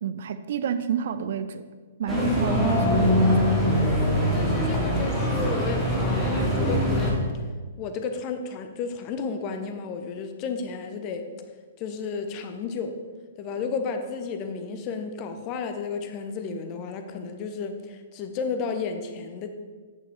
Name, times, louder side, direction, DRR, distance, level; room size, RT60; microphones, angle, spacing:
voice 1, 0.0-1.6 2.0-3.4, right 8 dB, 50° right, 12 dB, 0.5 m, -30 dB
sound 1, 2.1-7.1, equal, 5° left, 2.3 m, -22 dB
voice 2, 4.3-7.2 7.8-11.2 11.8-13.0 13.4-19.5, left 5 dB, 30° left, 7 dB, 0.9 m, -32 dB
8.7 x 6.9 x 4.8 m, 1.5 s
figure-of-eight pair, 115°, 0 cm